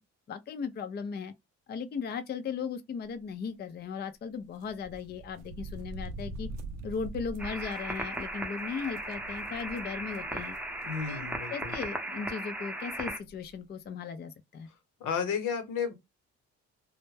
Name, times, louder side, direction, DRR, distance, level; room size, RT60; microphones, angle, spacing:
voice 1, 0.3-1.3 1.7-6.5 6.8-10.6 11.1-14.7, left 6 dB, 35° left, 0.4 m, -37 dB
quick steps, 4.6-11.3 11.7-11.8 12.9-13.0 13.2-13.5, right 2 dB, 85° right, 0.5 m, -44 dB
sound 1, 7.4-13.2, right 1 dB, 5° right, 0.6 m, -37 dB
voice 2, 10.8-11.7 15.0-15.9, left 6 dB, 80° left, 0.9 m, -32 dB
2.1 x 2.0 x 3.1 m
cardioid pair, 90°, 30 cm